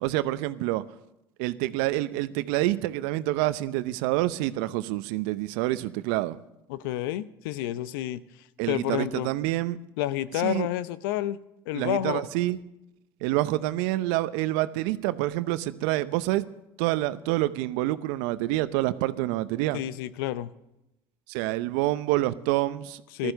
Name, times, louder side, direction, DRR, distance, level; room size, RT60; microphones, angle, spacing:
voice 1, 0.0-0.8 1.4-6.4 8.6-9.8 10.4-10.7 11.7-12.6 13.2-16.4 16.8-19.8 21.3-23.3, right 17 dB, 70° right, 0.7 m, -27 dB
voice 2, 6.7-8.2 8.7-9.3 10.0-11.4 11.7-12.2 19.7-20.5 23.1-23.3, left 13 dB, 75° left, 0.7 m, -29 dB
15.5 x 13.0 x 6.6 m
hypercardioid pair, 70°, 12 cm